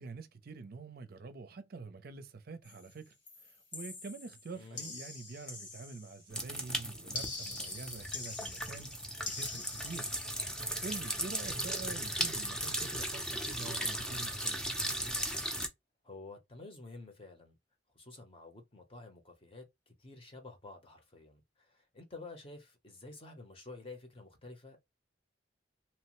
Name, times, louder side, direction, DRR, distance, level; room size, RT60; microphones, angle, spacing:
voice 1, 0.0-3.2 3.4-8.9 9.4-10.1 10.4-10.6 10.8-14.7, right 4 dB, 55° right, 0.5 m, -46 dB
sound 1, 2.6-2.9 3.3-6.4 7.1-11.5 11.9-12.1 12.4-12.7, left 3 dB, 75° left, 1.5 m, -45 dB
voice 2, 4.5-4.9 11.6-11.8 16.0-17.5 17.9-24.9, left 3 dB, 30° left, 0.8 m, -50 dB
sound 2, 6.3-15.7, equal, 5° left, 0.5 m, -37 dB
2.9 x 2.1 x 2.9 m
head